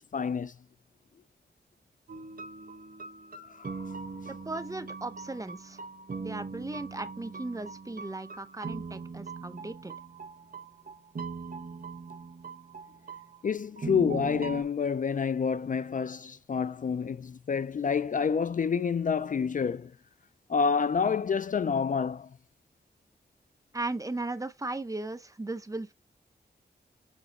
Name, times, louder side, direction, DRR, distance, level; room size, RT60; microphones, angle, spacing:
voice 1, 0.1-0.5 3.5-4.1 13.4-19.9 20.5-22.4, left 6 dB, 50° left, 0.4 m, -28 dB
sound 1, 2.1-14.6, right 4 dB, 55° right, 1.4 m, -41 dB
voice 2, 4.3-5.8 6.2-9.9 23.7-25.9, right 2 dB, 20° right, 0.8 m, -37 dB
7.2 x 3.8 x 4.2 m
wide cardioid pair, 100°, 18 cm